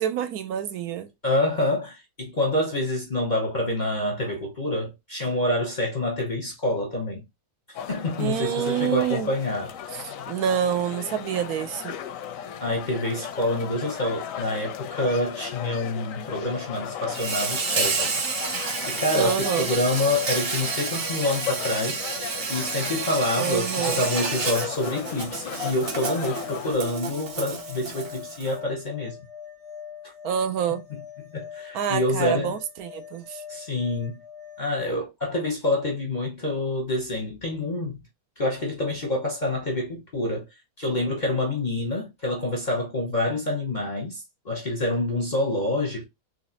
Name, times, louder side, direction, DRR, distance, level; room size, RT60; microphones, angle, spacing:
voice 1, 0.0-1.1 8.2-9.3 10.0-11.9 19.2-19.7 23.4-24.0 30.2-30.8 31.7-33.4, right 9 dB, 75° right, 1.0 m, -27 dB
voice 2, 1.2-7.2 7.9-9.8 12.6-18.1 18.8-22.0 22.5-29.2 31.3-32.5 33.5-34.2 34.6-38.0 38.4-40.4 40.8-46.0, left 1 dB, 40° left, 0.7 m, -27 dB
sound 1, 7.7-26.7, left 9 dB, 70° left, 0.8 m, -36 dB
Insect, 17.1-28.5, right 4 dB, 50° right, 0.8 m, -30 dB
sound 2, 26.2-34.8, left 8 dB, ahead, 0.5 m, -43 dB
3.9 x 3.0 x 2.7 m
omnidirectional pair, 1.7 m